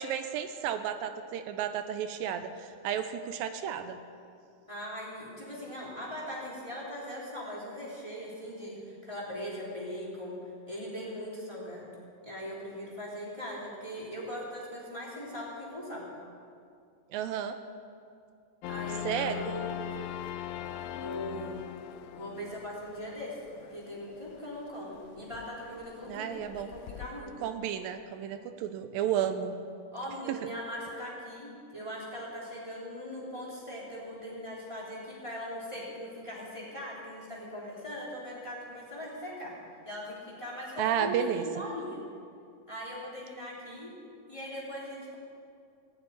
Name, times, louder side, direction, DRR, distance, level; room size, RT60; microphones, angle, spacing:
voice 1, 0.0-4.0 17.1-17.6 19.0-19.5 26.1-26.7 27.4-29.6 30.3-30.5 40.8-41.5, right 9 dB, 85° right, 9 dB, 2.4 m, -32 dB
voice 2, 4.7-10.4 10.7-11.8 12.2-16.1 18.7-19.9 20.9-21.7 22.1-27.3 29.9-39.5 39.8-42.0 42.7-43.9 44.3-45.2, equal, 10° left, -6 dB, 2.9 m, -40 dB
sound 1, 18.6-27.1, left 11 dB, 80° left, 2.3 m, -41 dB
18.5 x 7.2 x 9.4 m, 2.4 s
omnidirectional pair, 4.1 m